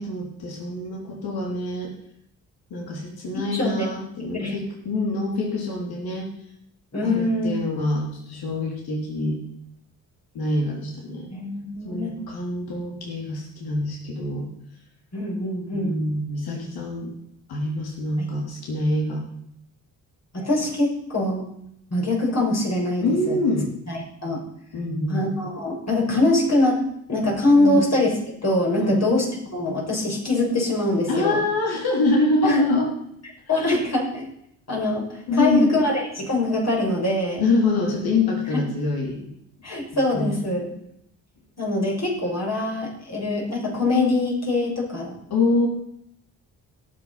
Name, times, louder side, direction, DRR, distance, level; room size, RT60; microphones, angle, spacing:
voice 1, 0.0-1.9 2.7-6.3 7.0-9.4 10.4-11.3 11.8-14.5 15.7-17.1 17.5-19.3 23.0-23.7 24.7-25.2 27.6-27.8 28.8-29.1 31.1-32.9 33.5-33.8 35.3-35.7 37.4-39.3 40.1-40.4 45.3-45.7, left 2 dB, 70° left, 0 dB, 3.5 m, -25 dB
voice 2, 3.3-3.9 4.3-4.6 6.9-7.6 11.3-12.2 15.1-16.0 18.2-18.3 20.3-21.4 21.9-23.4 23.9-24.4 25.1-29.3 29.5-31.4 32.4-32.6 33.5-34.1 34.7-37.4 38.5-38.6 39.6-40.7 41.6-45.2, left 2 dB, 40° left, -2 dB, 6.5 m, -23 dB
17.5 x 6.9 x 5.8 m, 0.71 s
supercardioid pair, 60°, 39 cm